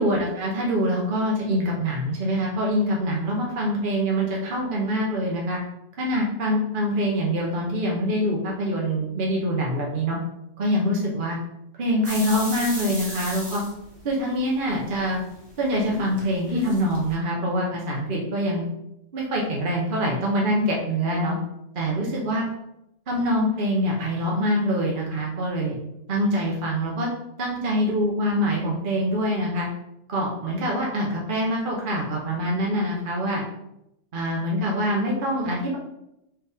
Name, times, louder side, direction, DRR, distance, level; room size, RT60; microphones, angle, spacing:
voice 1, 0.0-5.6 6.0-10.2 10.6-11.4 11.8-13.6 14.0-15.2 15.6-18.6 19.1-21.3 21.7-22.4 23.1-25.8 26.1-27.1 27.4-29.7 30.1-33.4 34.1-35.8, equal, 45° right, -2 dB, 0.7 m, -25 dB
sound 1, 12.0-14.5 14.9-17.1, left 2 dB, 20° right, 1.2 m, -34 dB
4.1 x 3.3 x 3.4 m, 0.84 s
omnidirectional pair, 1.6 m